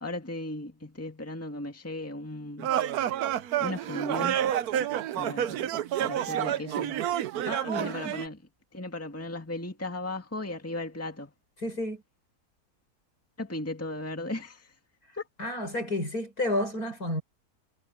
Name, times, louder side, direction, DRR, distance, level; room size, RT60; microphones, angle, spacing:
voice 1, 0.0-2.8 3.6-4.4 5.1-5.7 6.0-7.0 7.8-8.4 8.7-11.3 13.4-14.7 15.2-15.3, left 2 dB, 10° left, 2.0 m, -36 dB
sound 1, 2.6-8.3, right 11 dB, 75° right, 1.2 m, -29 dB
voice 2, 7.5-8.2 11.6-12.0 15.4-17.2, left 1 dB, 70° left, 7.6 m, -31 dB
omnidirectional pair, 1.7 m